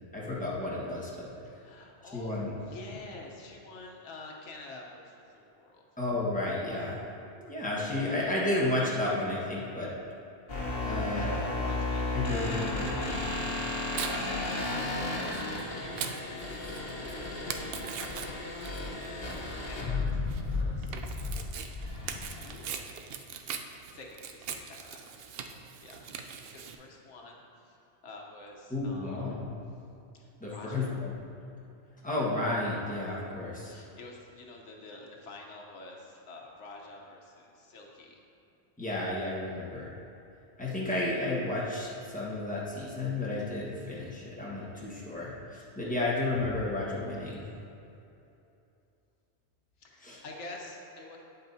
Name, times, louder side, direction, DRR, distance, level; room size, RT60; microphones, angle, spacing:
voice 1, 0.1-1.3 2.1-2.5 6.0-7.0 7.4-9.9 10.8-11.4 12.1-12.9 13.2-13.5 28.7-29.5 30.4-31.2 32.0-33.7 38.8-39.9 40.6-47.4 50.0-50.2, left 2 dB, 5° left, -6 dB, 1.4 m, -32 dB
voice 2, 1.4-5.9 10.7-14.5 15.1-18.9 19.2-21.6 22.3-22.8 23.9-27.8 28.0-29.5 30.1-31.0 33.6-38.2 49.8-51.2, left 2 dB, 90° left, 0 dB, 1.3 m, -49 dB
sound 1, 10.5-22.7, left 2 dB, 60° left, 1.5 m, -34 dB
Tearing, 13.2-26.7, right 7 dB, 65° right, 0.7 m, -42 dB
9.0 x 8.2 x 2.7 m, 2.8 s
omnidirectional pair, 1.2 m